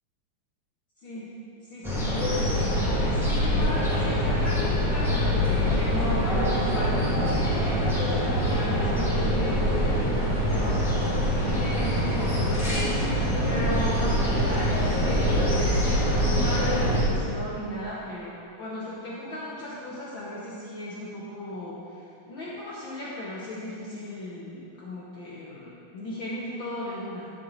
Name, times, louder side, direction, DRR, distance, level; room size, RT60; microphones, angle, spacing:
voice 1, 1.0-1.4 1.7-2.3 3.1-10.1 10.5-11.0 11.4-27.3, left 1 dB, 90° left, -7 dB, 1.0 m, -36 dB
sound 1, 1.8-17.0, equal, ahead, 1.5 m, -24 dB
11.5 x 7.0 x 4.0 m, 2.6 s
omnidirectional pair, 3.8 m